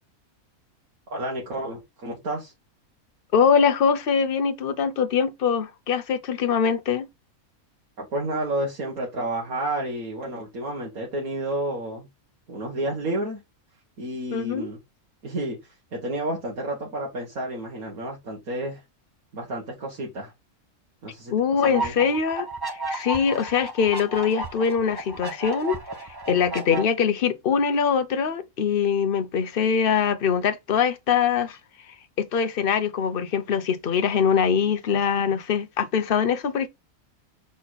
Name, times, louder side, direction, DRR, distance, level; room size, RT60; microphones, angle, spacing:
voice 1, 1.1-2.5 8.0-12.1 12.5-13.4 14.0-14.8 15.2-15.6 15.9-18.8 19.3-20.3 21.0-21.3 21.6-21.9, right 1 dB, 75° right, 2.3 m, -30 dB
voice 2, 3.3-7.1 14.3-14.7 21.3-31.6 32.2-36.7, left 7 dB, 45° left, 0.9 m, -23 dB
sound 1, 21.6-26.8, right 2 dB, 15° right, 1.4 m, -33 dB
7.2 x 4.2 x 4.1 m
omnidirectional pair, 1.5 m